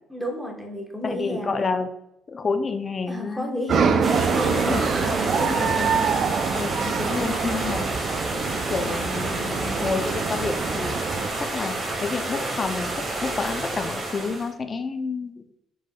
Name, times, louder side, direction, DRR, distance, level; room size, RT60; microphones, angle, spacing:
voice 1, 0.1-1.7 3.1-6.2, left 1 dB, 5° right, 2 dB, 1.2 m, -32 dB
voice 2, 1.0-1.9 2.3-3.6 4.0-4.2 4.5-4.9 6.5-11.0 11.4-12.9 13.2-15.3, left 4 dB, 40° left, 8 dB, 0.5 m, -29 dB
sound 1, 3.7-11.3, right 6 dB, 55° right, 0.4 m, -25 dB
sound 2, 4.0-14.5, right 2 dB, 40° right, 1.5 m, -29 dB
4.6 x 4.3 x 2.3 m, 0.80 s
supercardioid pair, 65°, 0 cm